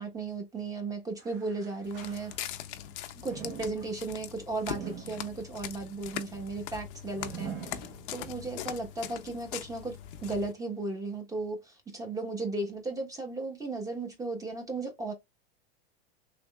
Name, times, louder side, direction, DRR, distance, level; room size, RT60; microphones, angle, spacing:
voice 1, 0.0-2.6 3.1-7.8 8.1-15.1, right 3 dB, 10° right, 1.1 m, -35 dB
sound 1, 1.2-2.8 3.2-8.5 9.0-9.1 9.9-10.0, right 7 dB, 35° right, 1.1 m, -46 dB
Walk footsteps, 1.8-10.5, left 11 dB, 55° left, 0.6 m, -41 dB
3.4 x 3.1 x 2.3 m
hypercardioid pair, 115°, 31 cm